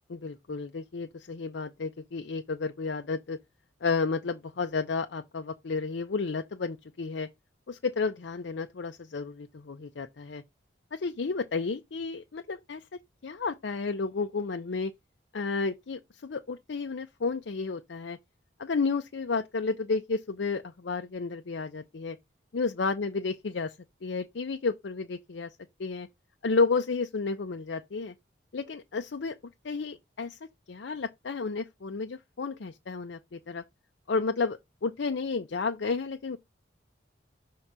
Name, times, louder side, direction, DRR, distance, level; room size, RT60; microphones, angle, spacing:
voice 1, 0.1-3.4 3.8-7.3 7.7-10.4 10.9-12.8 13.2-14.9 15.3-18.2 18.6-22.2 22.5-23.7 24.0-26.1 26.4-28.1 28.5-29.3 29.6-30.4 30.7-33.6 34.1-36.4, left 4 dB, 70° left, 0.5 m, -32 dB
6.0 x 3.7 x 5.5 m
head